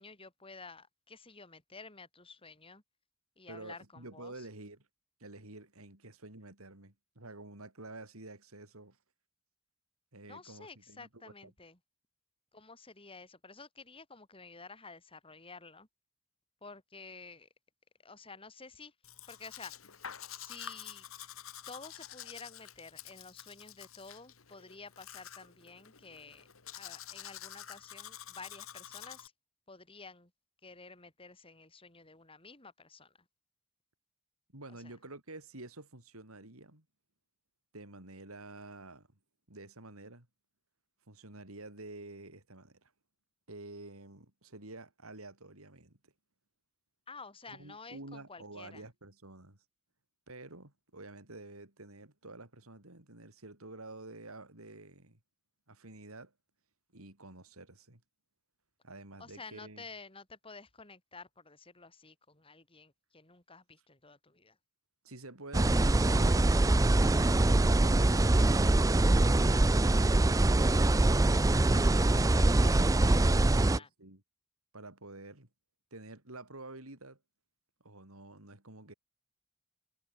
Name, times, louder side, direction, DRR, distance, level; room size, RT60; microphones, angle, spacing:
voice 1, 0.0-2.8 3.4-4.5 10.3-11.8 12.5-15.9 16.6-17.5 18.0-18.9 19.3-19.7 20.3-21.1 21.7-26.5 26.7-29.3 29.7-30.3 30.6-33.1 34.8-34.9 47.1-48.8 59.2-64.6 71.7-73.9, left 4 dB, 25° left, 5.6 m, -51 dB
voice 2, 3.5-4.9 5.2-9.0 10.1-11.5 34.5-36.8 37.7-39.1 39.5-40.3 41.1-42.9 43.5-46.1 47.5-49.6 50.3-55.2 55.7-56.3 56.9-58.0 58.8-59.8 65.0-65.8 66.0-66.5 67.4-71.4 73.1-74.2 74.7-75.5 75.9-77.2 77.8-78.9, right 2 dB, 90° right, 4.5 m, -49 dB
Domestic sounds home sounds, 19.0-29.3, left 10 dB, 75° left, 2.3 m, -48 dB
sound 1, 65.5-73.8, right 2 dB, 15° right, 0.4 m, -24 dB
head